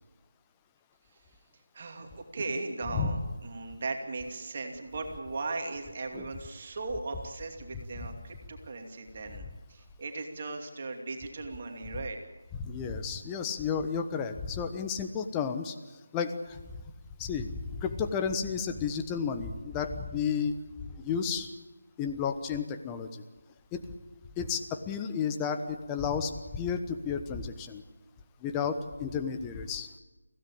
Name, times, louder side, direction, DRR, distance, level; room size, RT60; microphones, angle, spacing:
voice 1, 1.7-12.2, right 3 dB, 40° right, 3 dB, 2.6 m, -38 dB
voice 2, 12.5-15.8 16.1-16.6 17.2-17.5 17.8-20.5 21.0-21.5 22.0-23.2 23.7-23.8 24.4-27.8 28.4-29.9, left 6 dB, 15° left, 7 dB, 1.2 m, -32 dB
24.5 x 16.5 x 8.7 m, 1.2 s
figure-of-eight pair, 160°, 0 cm